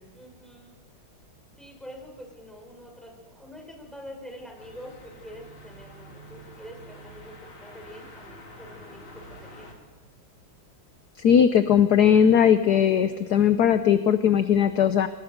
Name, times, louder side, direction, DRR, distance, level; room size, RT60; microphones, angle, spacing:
voice 1, 0.1-0.8 1.6-7.3 7.6-9.9 12.9-13.4, equal, ahead, 1 dB, 5.8 m, -45 dB
sound 1, 4.6-9.7, equal, 80° left, 4.6 m, -47 dB
voice 2, 11.2-15.1, left 8 dB, 60° left, 10 dB, 1.2 m, -19 dB
26.5 x 18.5 x 6.7 m, 1.3 s
omnidirectional pair, 2.3 m